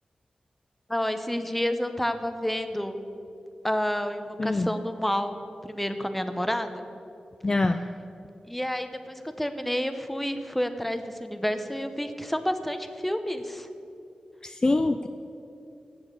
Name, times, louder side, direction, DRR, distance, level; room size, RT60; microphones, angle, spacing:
voice 1, 0.9-3.0 3.6-5.3 5.6-6.8 8.5-13.7, equal, 5° left, 8 dB, 0.7 m, -29 dB
voice 2, 7.4-7.8 14.4-15.1, left 2 dB, 30° left, 8 dB, 0.3 m, -24 dB
8.7 x 7.2 x 8.0 m, 2.8 s
wide cardioid pair, 90°, 2 cm